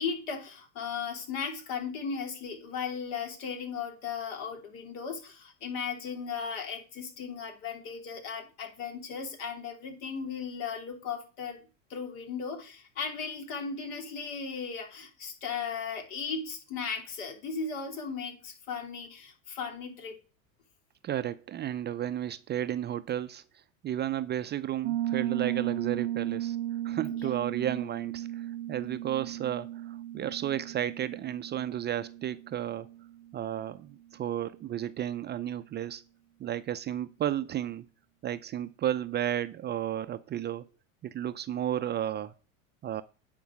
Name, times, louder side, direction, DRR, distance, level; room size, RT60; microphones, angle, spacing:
voice 1, 0.0-11.6 11.9-20.2 27.2-27.3, left 6 dB, 70° left, 3.1 m, -36 dB
voice 2, 21.0-23.4 23.8-26.6 26.8-32.9 33.3-36.0 36.4-37.9 38.2-40.7 41.0-42.3 42.8-43.0, right 11 dB, 25° right, 0.5 m, -33 dB
Piano, 24.8-33.4, right 13 dB, 75° right, 0.6 m, -35 dB
9.5 x 4.6 x 7.3 m
hypercardioid pair, 100°, 41 cm